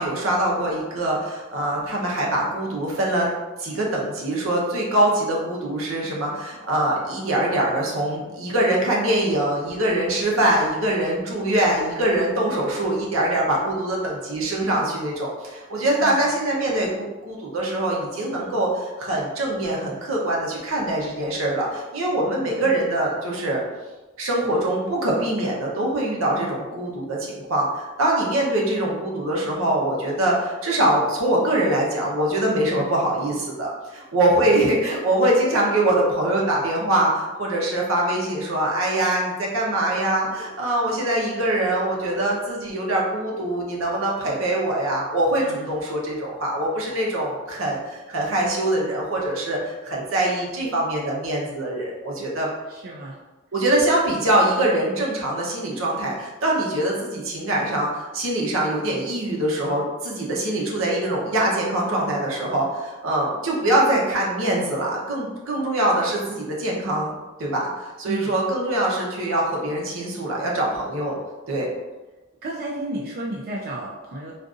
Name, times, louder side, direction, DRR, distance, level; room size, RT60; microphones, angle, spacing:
voice 1, 0.0-3.3 3.6-23.6 24.2-52.5 53.5-67.1 67.4-71.2 71.5-71.7, right 1 dB, 85° right, -3 dB, 0.8 m, -23 dB
voice 2, 45.3-45.7 52.2-52.3 52.7-53.2 68.1-68.4 72.4-74.3, right 1 dB, 50° right, -2 dB, 0.4 m, -33 dB
3.7 x 2.5 x 2.4 m, 1.2 s
head